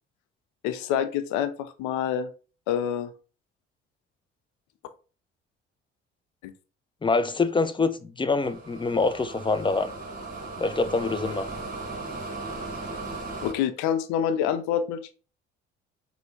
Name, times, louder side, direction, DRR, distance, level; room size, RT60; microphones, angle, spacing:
voice 1, 0.6-2.3 2.7-3.1 13.4-15.1, left 9 dB, 80° left, 0.5 m, -27 dB
voice 2, 7.0-9.9 10.6-11.5, left 3 dB, 15° left, 0.5 m, -25 dB
sound 1, 8.4-13.5, right 3 dB, 30° right, 1.3 m, -37 dB
4.4 x 2.3 x 3.8 m
hypercardioid pair, 60°, 29 cm